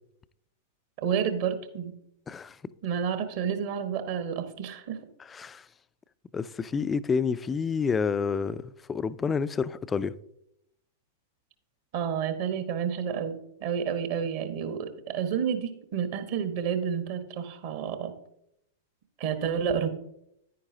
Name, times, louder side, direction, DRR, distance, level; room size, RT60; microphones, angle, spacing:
voice 1, 1.0-1.9 2.8-5.0 11.9-18.1 19.2-19.9, right 7 dB, 50° right, 1.2 m, -30 dB
voice 2, 6.3-8.6 8.9-10.1, left 5 dB, 15° left, 0.3 m, -28 dB
10.0 x 9.3 x 2.8 m
figure-of-eight pair, 95°, 0 cm